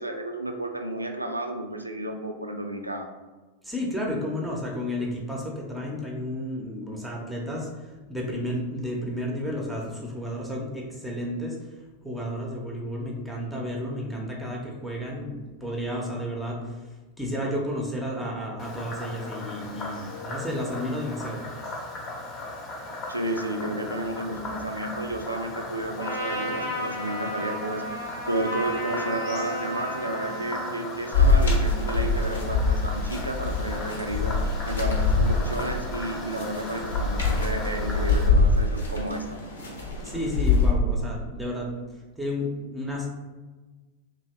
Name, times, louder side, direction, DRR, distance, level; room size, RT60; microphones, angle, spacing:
voice 1, 0.0-3.1 23.1-39.3, right 1 dB, 85° right, 4 dB, 0.3 m, -32 dB
voice 2, 3.6-7.7 8.1-11.6 12.0-16.8 17.2-21.4 36.2-36.3 40.0-41.7 42.2-43.1, left 1 dB, 5° right, -2 dB, 0.6 m, -32 dB
Frog, 18.6-38.3, left 2 dB, 30° left, 0.7 m, -38 dB
Trumpet, 26.0-30.9, equal, 90° left, 1.0 m, -33 dB
sound 1, 31.1-40.7, left 3 dB, 70° left, 0.7 m, -24 dB
2.7 x 2.6 x 3.2 m, 1.3 s
figure-of-eight pair, 90°, 0 cm